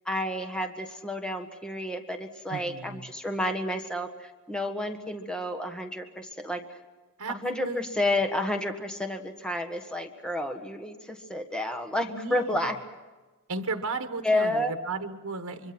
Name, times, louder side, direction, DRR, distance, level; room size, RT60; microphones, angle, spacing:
voice 1, 0.0-6.6 7.3-12.7 14.2-14.7, left 1 dB, 5° left, 5 dB, 1.5 m, -30 dB
voice 2, 2.5-3.1 7.2-7.8 12.1-12.7 13.5-15.7, right 3 dB, 80° right, 7 dB, 1.4 m, -35 dB
25.5 x 24.0 x 6.1 m, 1.2 s
head